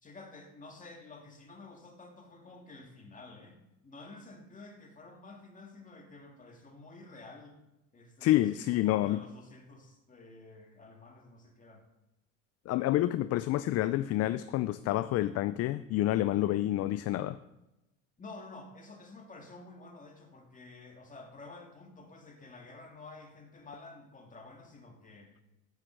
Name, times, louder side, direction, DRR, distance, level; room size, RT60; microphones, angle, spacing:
voice 1, 0.0-7.6 7.9-11.8 18.2-25.3, left 3 dB, 20° left, 2 dB, 2.4 m, -51 dB
voice 2, 8.2-9.2 12.7-17.4, left 14 dB, 45° left, 14 dB, 0.4 m, -28 dB
9.0 x 7.7 x 6.5 m, 0.94 s
supercardioid pair, 105°, 36 cm